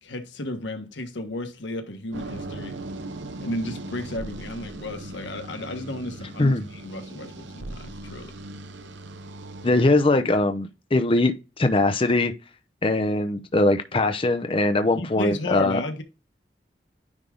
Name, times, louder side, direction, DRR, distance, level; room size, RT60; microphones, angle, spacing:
voice 1, 0.0-2.8 3.4-8.3 15.0-16.0, left 1 dB, 90° left, 1.3 m, -33 dB
sound 1, 2.1-9.9, right 2 dB, 90° right, 0.8 m, -38 dB
voice 2, 6.2-6.6 9.6-12.3 12.8-15.8, left 2 dB, 30° left, 0.6 m, -21 dB
9.7 x 3.5 x 3.7 m
head